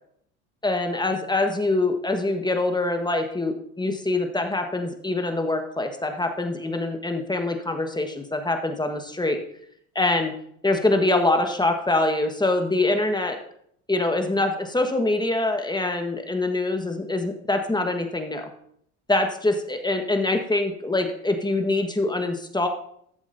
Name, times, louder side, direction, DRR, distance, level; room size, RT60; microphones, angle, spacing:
voice 1, 0.6-9.4 9.9-10.3 10.6-13.4 13.9-18.5 19.1-22.7, left 2 dB, 10° left, 5 dB, 1.4 m, -24 dB
13.0 x 7.0 x 2.7 m, 0.68 s
hypercardioid pair, 65°, 42 cm